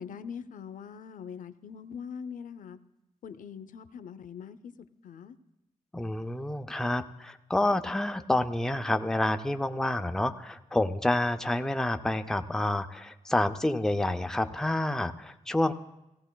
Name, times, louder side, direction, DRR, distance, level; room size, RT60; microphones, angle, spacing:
voice 1, 0.0-2.8 3.2-4.6 5.0-5.4, left 7 dB, 90° left, 12 dB, 0.5 m, -42 dB
voice 2, 5.9-15.7, left 1 dB, 5° left, 6 dB, 0.4 m, -28 dB
16.5 x 16.0 x 2.2 m, 0.93 s
wide cardioid pair, 125°, 13 cm